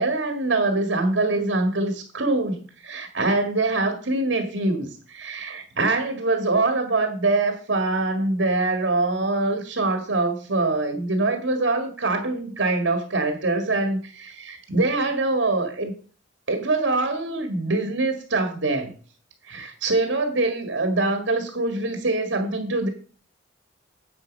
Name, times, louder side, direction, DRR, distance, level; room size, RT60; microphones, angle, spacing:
voice 1, 0.0-15.9 16.5-18.9 19.5-22.9, right 2 dB, 75° right, 6 dB, 1.9 m, -24 dB
9.5 x 7.3 x 5.3 m, 0.40 s
head